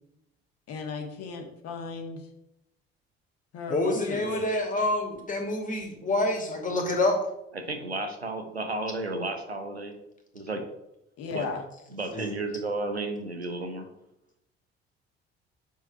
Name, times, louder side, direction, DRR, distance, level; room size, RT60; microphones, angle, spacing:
voice 1, 0.7-2.2 3.5-4.4 11.2-11.6, left 5 dB, 50° left, 3 dB, 1.6 m, -35 dB
voice 2, 3.7-7.2 12.1-12.3, left 2 dB, 25° left, 3 dB, 2.3 m, -27 dB
voice 3, 7.5-9.9 10.3-10.6 11.3-11.5 11.9-13.9, right 2 dB, 90° right, 4 dB, 0.9 m, -33 dB
7.0 x 4.9 x 5.4 m, 0.83 s
figure-of-eight pair, 50°, 31 cm